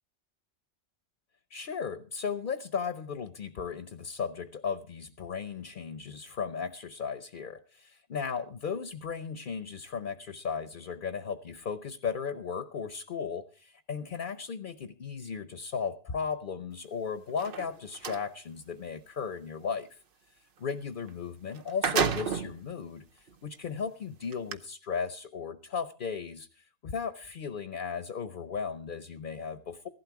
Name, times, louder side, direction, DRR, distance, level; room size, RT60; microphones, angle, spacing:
voice 1, 1.5-20.0 20.6-29.9, left 6 dB, 50° left, 12 dB, 0.9 m, -36 dB
sound 1, 17.3-18.2 21.1-21.2 21.5-22.6 23.3-23.4 24.3-24.5, right 6 dB, 55° right, 1.0 m, -30 dB
15.5 x 12.0 x 4.6 m, 0.36 s
omnidirectional pair, 1.2 m